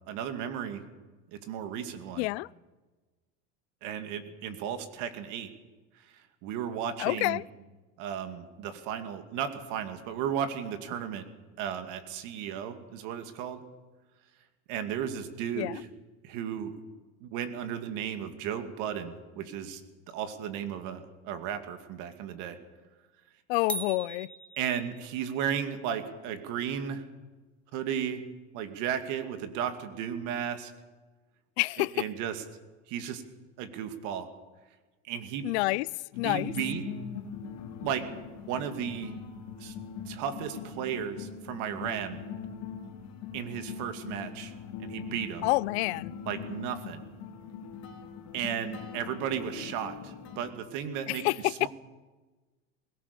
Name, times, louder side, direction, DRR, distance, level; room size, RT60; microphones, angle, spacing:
voice 1, 0.1-0.8 1.3-2.3 3.8-5.5 6.4-7.4 8.0-11.3 11.6-13.6 14.7-15.9 16.2-16.8 17.2-19.8 20.1-22.6 24.6-27.0 27.7-28.2 28.5-30.7 31.8-32.4 32.9-33.2 33.6-34.3 35.1-35.5 36.2-36.8 37.8-38.0 38.5-39.2 39.6-39.7 40.1-42.2 43.3-44.5 44.8-45.5 46.3-47.0 48.3-51.7, right 8 dB, 65° right, 2.6 m, -34 dB
voice 2, 2.2-2.5 7.0-7.4 15.6-15.8 23.5-24.3 31.6-32.1 35.4-35.9 36.2-36.5 45.4-46.1 51.1-51.5, left 22 dB, 80° left, 0.5 m, -28 dB
sound 1, 23.7-25.3, right 1 dB, 5° left, 1.1 m, -39 dB
sound 2, 36.1-50.5, left 6 dB, 55° left, 3.2 m, -41 dB
21.0 x 18.0 x 7.0 m
supercardioid pair, 120°, 32 cm